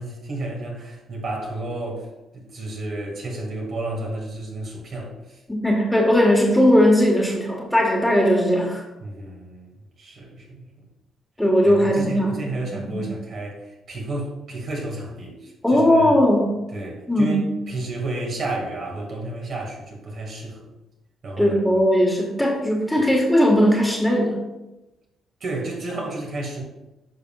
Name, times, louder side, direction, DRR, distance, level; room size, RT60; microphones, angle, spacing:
voice 1, 0.0-2.1 2.3-5.4 9.0-9.7 10.0-10.7 11.6-16.1 16.7-20.6 21.2-21.8 25.4-26.6, right 2 dB, 60° right, -1 dB, 2.0 m, -31 dB
voice 2, 5.5-8.8 11.4-12.4 12.7-13.1 15.6-16.6 17.1-17.5 21.4-24.4, equal, 5° left, -1 dB, 1.5 m, -18 dB
10.0 x 5.6 x 2.4 m, 1.0 s
cardioid pair, 90°, 0 cm